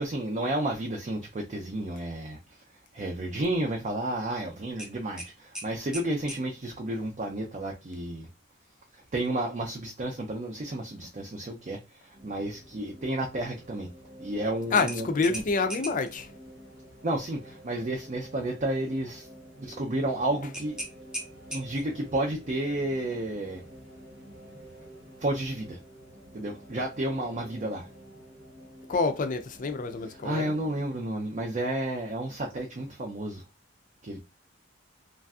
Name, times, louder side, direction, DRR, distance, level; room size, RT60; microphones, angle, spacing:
voice 1, 0.0-2.4 2.9-8.3 9.1-13.9 14.2-15.4 17.0-19.3 19.6-20.8 21.5-23.6 25.2-25.8 26.3-27.9 30.2-33.4 34.0-34.2, right 1 dB, 40° right, 0.5 m, -31 dB
sound 1, 4.8-6.5 9.1-9.3 9.7-9.8 14.8-16.1 20.5-22.0, equal, 5° right, 0.9 m, -39 dB
sound 2, 12.1-30.9, right 1 dB, 70° right, 1.0 m, -49 dB
voice 2, 14.7-16.3 28.9-30.5, left 4 dB, 45° left, 0.4 m, -27 dB
3.2 x 2.5 x 2.3 m
head